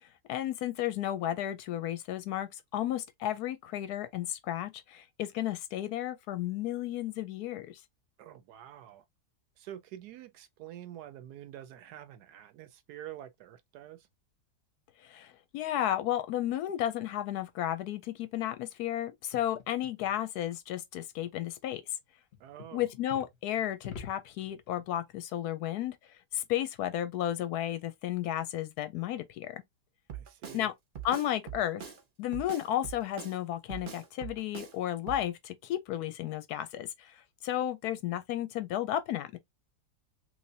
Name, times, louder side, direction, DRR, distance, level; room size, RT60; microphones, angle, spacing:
voice 1, 0.0-7.8 15.0-21.8 22.7-29.6 30.5-30.7 31.0-31.8 32.2-39.4, left 12 dB, 75° left, 1.0 m, -33 dB
voice 2, 8.2-9.0 9.6-14.1 22.4-22.9 30.1-30.7, right 11 dB, 75° right, 1.1 m, -47 dB
sound 1, 19.3-20.1 22.3-23.3 23.8-24.8, left 6 dB, 45° left, 0.9 m, -46 dB
Drum kit, 30.1-30.6 31.0-32.0 32.3-33.4 33.7-34.7 35.1-35.2, right 8 dB, 55° right, 0.5 m, -42 dB
3.2 x 3.0 x 2.6 m
omnidirectional pair, 1.8 m